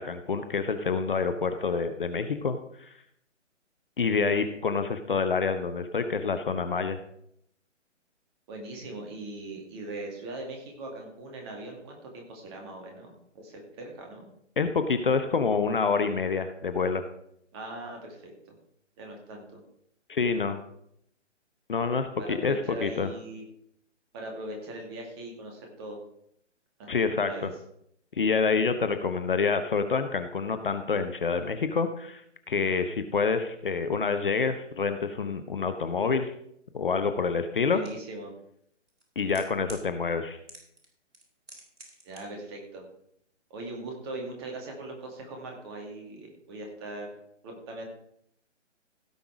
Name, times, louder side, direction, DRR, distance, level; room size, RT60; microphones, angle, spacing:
voice 1, 0.0-2.9 4.0-7.0 14.6-17.0 20.1-20.6 21.7-23.1 26.9-27.5 28.1-32.2 32.5-36.3 36.7-37.8 39.2-40.4, left 5 dB, 45° left, 9 dB, 0.9 m, -27 dB
voice 2, 8.5-14.3 17.5-18.6 19.0-19.6 22.2-23.4 24.1-26.0 26.8-26.9 27.2-27.5 37.7-38.3 42.0-42.8 43.5-47.1 47.4-47.9, right 2 dB, 20° right, 1 dB, 2.2 m, -40 dB
sound 1, 37.8-37.9 38.9-39.8 40.5-40.9 41.1-42.2 42.5-42.6, right 1 dB, 70° right, 3.7 m, -45 dB
16.5 x 5.8 x 4.8 m, 0.72 s
figure-of-eight pair, 140°, 37 cm